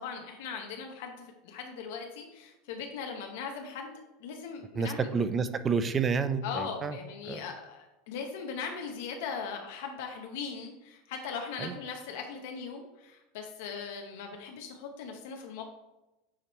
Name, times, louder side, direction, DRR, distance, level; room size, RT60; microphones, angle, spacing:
voice 1, 0.0-3.9 4.2-5.1 6.4-15.6, left 6 dB, 75° left, 3 dB, 0.9 m, -39 dB
voice 2, 4.7-7.0 7.3-7.4 11.6-11.7, right 5 dB, 20° right, 11 dB, 0.4 m, -29 dB
8.5 x 3.0 x 4.2 m, 0.98 s
supercardioid pair, 145°, 0 cm